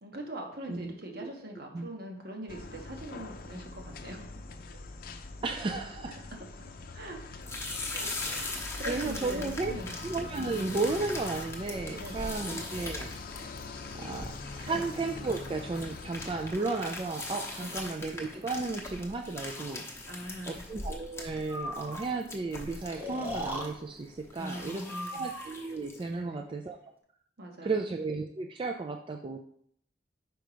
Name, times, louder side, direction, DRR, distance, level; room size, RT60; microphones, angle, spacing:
voice 1, 0.0-4.3 6.6-7.2 7.9-10.0 12.0-12.5 14.7-14.9 17.6-17.8 20.1-20.7 24.4-25.3 26.1-26.4 27.4-27.8, right 1 dB, 60° right, 2 dB, 1.2 m, -42 dB
voice 2, 0.7-1.3 1.7-1.9 5.4-6.2 8.0-9.7 10.0-13.1 13.9-19.9 20.5-24.9 25.1-26.8 27.6-29.4, right 3 dB, 30° right, 4 dB, 0.4 m, -34 dB
sound 1, 2.5-16.5, left 3 dB, 55° left, 0.6 m, -44 dB
sound 2, 7.4-26.1, left 2 dB, 15° left, 0.9 m, -41 dB
Breathing, 21.5-22.1 22.9-23.7 24.8-25.7, equal, 10° right, 0.9 m, -38 dB
5.1 x 4.5 x 5.0 m, 0.65 s
head